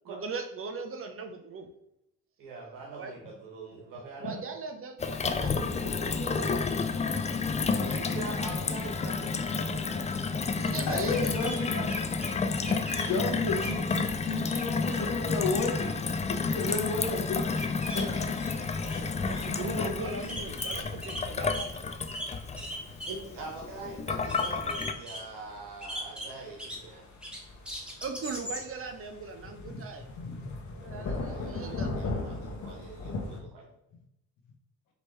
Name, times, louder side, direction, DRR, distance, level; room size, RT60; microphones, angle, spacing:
voice 1, 0.0-1.7 3.0-3.1 4.2-7.0 7.3-7.8 10.6-11.9 12.6-13.0 16.7-16.8 19.2-22.0 22.3-22.8 24.3-24.8 28.0-30.1 30.8-31.9, right 4 dB, 40° right, 5 dB, 0.8 m, -40 dB
voice 2, 2.4-4.4 7.7-10.1 23.1-27.0 31.0-33.3, right 3 dB, 85° right, -2 dB, 1.3 m, -43 dB
Gurgling / Water tap faucet / Sink (filling or washing), 5.0-24.9, left 4 dB, 20° left, 0.4 m, -31 dB
voice 3, 10.8-11.7 13.0-15.9 16.3-17.4 17.9-18.4 18.9-19.0 22.4-22.5 29.6-29.8 30.2-30.6, left 3 dB, 85° left, 1 dB, 1.2 m, -32 dB
sound 1, 11.1-12.3 12.6-13.1 13.6-13.8 14.2-15.0 15.3-15.9 17.5-18.1 18.4-19.0 19.3-19.5 19.9-20.0 20.2-21.7 22.1-23.3 23.6-23.7 24.2-25.2 25.8-26.8 27.2-28.7, equal, 5° right, 1.2 m, -39 dB
sound 2, 18.2-33.4, left 2 dB, 55° left, 1.1 m, -41 dB
5.2 x 3.0 x 3.2 m, 0.83 s
supercardioid pair, 75°, 33 cm